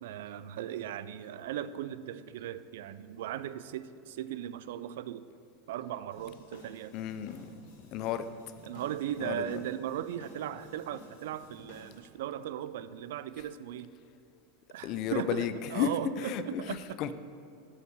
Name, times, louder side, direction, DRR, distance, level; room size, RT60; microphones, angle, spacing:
voice 1, 0.0-5.2 5.7-6.9 8.6-14.0 14.7-17.0, right 10 dB, 80° right, 14 dB, 0.3 m, -38 dB
sound 1, 6.1-12.0, left 2 dB, 65° left, 2.0 m, -54 dB
voice 2, 6.9-7.5 7.9-8.2 9.2-9.3 14.8-15.9 16.2-16.6 17.0-17.1, left 10 dB, 45° left, 12 dB, 0.4 m, -32 dB
7.8 x 5.6 x 6.6 m, 2.7 s
supercardioid pair, 145°, 0 cm